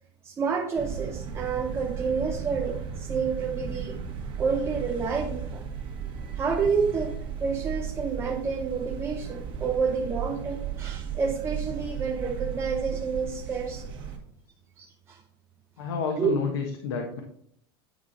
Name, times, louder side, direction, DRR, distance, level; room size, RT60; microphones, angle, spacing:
voice 1, 0.2-4.0 4.4-5.6 6.3-13.8 14.8-15.2 16.2-16.3, right 5 dB, 20° right, 1 dB, 0.7 m, -29 dB
sound 1, 0.8-14.2, right 7 dB, 40° right, 1.6 m, -35 dB
voice 2, 15.8-17.2, left 5 dB, 80° left, 2 dB, 1.2 m, -30 dB
9.4 x 4.9 x 4.1 m, 0.66 s
supercardioid pair, 135°, 13 cm